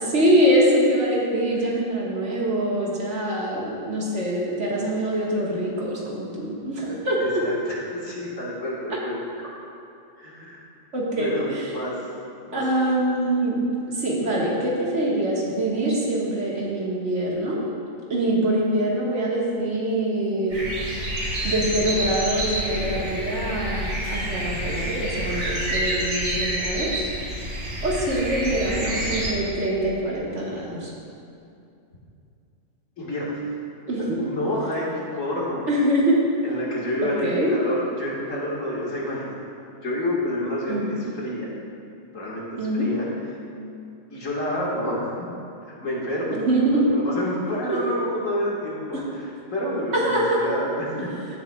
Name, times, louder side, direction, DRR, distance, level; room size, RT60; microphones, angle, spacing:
voice 1, 0.0-7.4 8.9-9.0 10.9-11.7 12.5-17.6 18.1-20.6 21.4-27.0 27.8-30.9 33.9-34.2 35.7-36.2 37.0-37.5 40.7-41.0 42.6-42.9 46.3-46.9 47.7-47.8 48.9-49.0 49.9-50.4 51.0-51.1, right 1 dB, 65° right, -5 dB, 1.9 m, -24 dB
voice 2, 7.2-9.2 10.2-10.6 11.2-12.0 12.5-12.6 33.0-33.4 34.2-35.7 36.4-39.3 39.8-41.5 42.1-43.1 44.1-45.3 45.8-46.4 46.7-49.2 49.5-51.4, left 1 dB, 75° left, -5 dB, 2.2 m, -29 dB
sound 1, 20.5-29.3, right 1 dB, 90° right, 2.1 m, -28 dB
16.0 x 7.2 x 2.3 m, 2.6 s
omnidirectional pair, 1.3 m